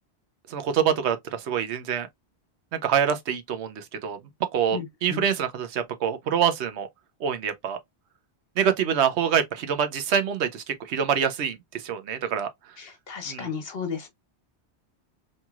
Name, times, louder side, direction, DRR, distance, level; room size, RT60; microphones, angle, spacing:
voice 1, 0.5-2.1 2.8-4.2 4.5-6.9 7.2-7.8 8.6-12.5 13.3-13.5, right 8 dB, 80° right, 0.9 m, -25 dB
voice 2, 4.7-5.3 12.8-14.1, left 6 dB, 60° left, 1.0 m, -34 dB
3.0 x 2.7 x 2.3 m
omnidirectional pair, 1.1 m